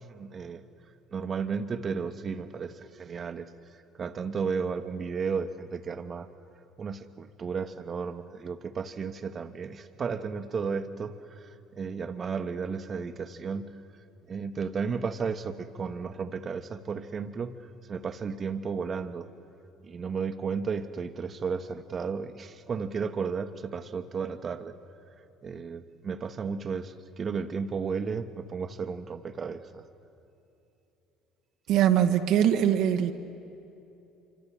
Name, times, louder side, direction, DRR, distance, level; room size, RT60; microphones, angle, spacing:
voice 1, 0.1-0.6 1.1-3.5 4.0-6.3 6.8-13.7 14.3-19.3 19.8-24.7 25.4-29.8, right 5 dB, 35° right, 11 dB, 1.2 m, -33 dB
voice 2, 31.7-33.1, right 10 dB, 55° right, 6 dB, 1.1 m, -22 dB
26.5 x 25.0 x 7.6 m, 2.9 s
figure-of-eight pair, 60°, 0 cm